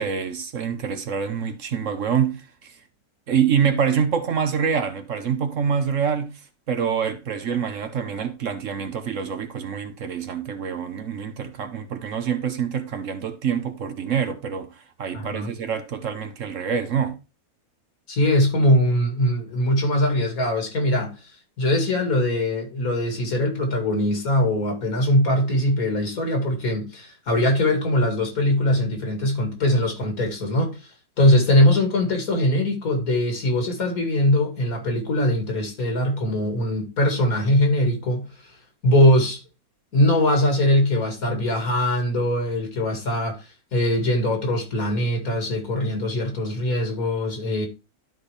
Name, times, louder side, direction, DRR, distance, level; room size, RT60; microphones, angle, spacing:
voice 1, 0.0-2.7 3.3-6.3 6.7-17.2, right 7 dB, 60° right, 1.2 m, -26 dB
voice 2, 15.1-15.5 18.1-21.3 21.6-38.6 38.8-39.4 39.9-43.4 43.7-47.7, left 1 dB, 65° left, 2.5 m, -21 dB
12.5 x 4.3 x 3.3 m
omnidirectional pair, 1.6 m